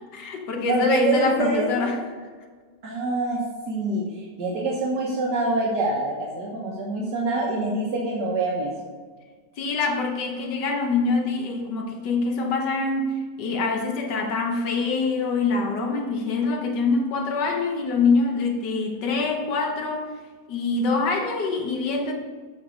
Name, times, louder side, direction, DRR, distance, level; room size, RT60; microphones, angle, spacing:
voice 1, 0.1-2.0 9.6-20.1 20.5-22.1, left 4 dB, 80° left, 3 dB, 1.6 m, -25 dB
voice 2, 0.7-1.9 2.8-8.7, right 2 dB, 75° right, -3 dB, 1.7 m, -25 dB
7.9 x 5.7 x 5.2 m, 1.5 s
omnidirectional pair, 1.8 m